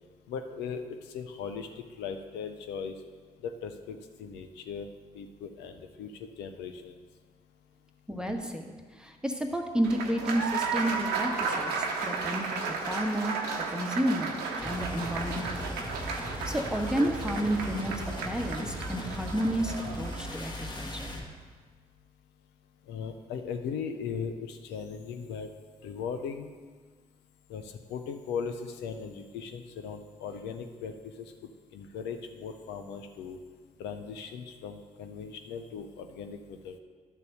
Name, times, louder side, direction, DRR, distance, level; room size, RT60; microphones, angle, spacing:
voice 1, 0.3-3.0 3.4-7.0 22.8-25.5 25.8-26.5 27.5-33.4 33.8-36.8, left 6 dB, 75° left, 6 dB, 0.6 m, -38 dB
voice 2, 8.1-8.6 9.0-12.6 12.9-13.4 13.7-14.4 14.6-15.7 16.0-17.9 18.2-21.1, equal, 5° right, 4 dB, 1.3 m, -31 dB
Applause, 9.8-20.2, right 4 dB, 75° right, 1.0 m, -34 dB
sound 1, 14.6-21.3, equal, 25° left, 2.1 m, -38 dB
11.0 x 4.1 x 6.6 m, 1.5 s
hypercardioid pair, 40°, 18 cm